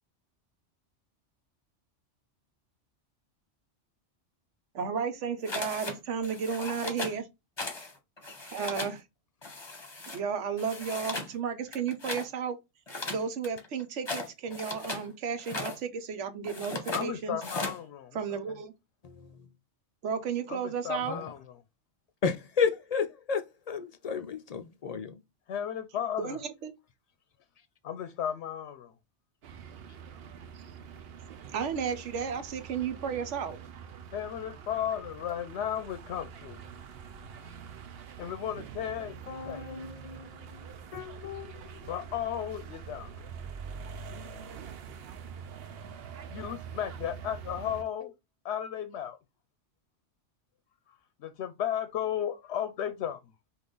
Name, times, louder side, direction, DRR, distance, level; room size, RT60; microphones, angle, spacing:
voice 1, 4.7-7.3 8.5-9.0 10.1-12.6 13.1-17.4 18.1-18.7 20.0-21.2 26.2-26.7 30.2-30.6 31.5-33.6, right 6 dB, 80° right, 1.1 m, -33 dB
sound 1, 5.5-6.0 6.2-7.2 7.6-7.9 8.2-9.0 9.4-10.2 10.6-11.3 11.7-12.3 12.9-15.1 15.4-15.8 16.4-17.1 17.4-17.8, left 3 dB, 25° left, 0.9 m, -37 dB
voice 2, 16.9-18.4 20.5-21.4 25.5-26.4 27.8-28.9 34.1-36.8 38.2-39.6 41.9-43.1 46.3-48.1 48.4-49.2 51.2-53.2, left 9 dB, 70° left, 0.8 m, -34 dB
voice 3, 22.2-25.1 39.3-41.5, left 6 dB, 55° left, 0.4 m, -33 dB
sound 2, 29.4-47.8, right 7 dB, 60° right, 0.8 m, -45 dB
5.4 x 2.5 x 3.8 m
omnidirectional pair, 1.2 m